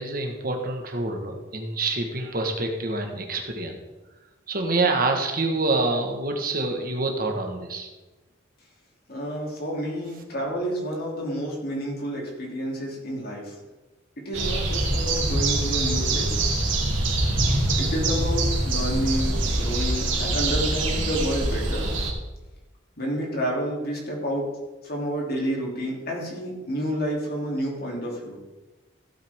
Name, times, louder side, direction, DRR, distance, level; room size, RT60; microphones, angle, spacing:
voice 1, 0.0-3.8 4.5-7.9, right 2 dB, 50° right, 3 dB, 1.5 m, -26 dB
voice 2, 9.1-13.5 14.2-16.4 17.8-21.9 23.0-24.4 24.8-28.4, equal, 50° left, -1 dB, 3.0 m, -29 dB
sound 1, 14.3-22.1, right 2 dB, 90° right, 2.5 m, -24 dB
15.5 x 8.4 x 3.6 m, 1.1 s
head